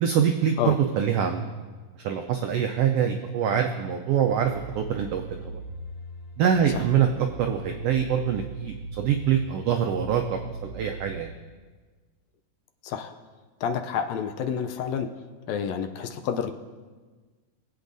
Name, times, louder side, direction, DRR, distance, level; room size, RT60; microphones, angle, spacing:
voice 1, 0.0-1.4 2.0-5.6 6.4-11.3, right 8 dB, 85° right, 4 dB, 1.3 m, -25 dB
sound 1, 4.3-11.2, right 3 dB, 40° left, 1.4 m, -39 dB
voice 2, 12.8-13.1 13.6-15.1 15.5-16.5, left 7 dB, 80° left, 6 dB, 1.8 m, -29 dB
22.5 x 8.3 x 2.6 m, 1.4 s
omnidirectional pair, 3.3 m